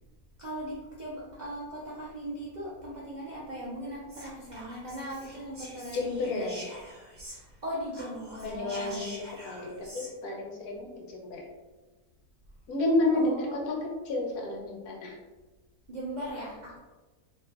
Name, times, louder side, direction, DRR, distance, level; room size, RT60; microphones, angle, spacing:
voice 1, 0.4-6.5 7.2-9.0 13.1-13.8 15.9-16.8, equal, 60° right, -7 dB, 0.4 m, -39 dB
Whispering, 4.1-7.6 7.9-10.1, equal, 35° right, 1.0 m, -46 dB
voice 2, 5.9-6.6 8.4-9.1 9.4-11.4 12.7-15.2, left 2 dB, 75° left, -1 dB, 1.2 m, -30 dB
3.0 x 2.6 x 3.4 m, 1.2 s
omnidirectional pair, 1.6 m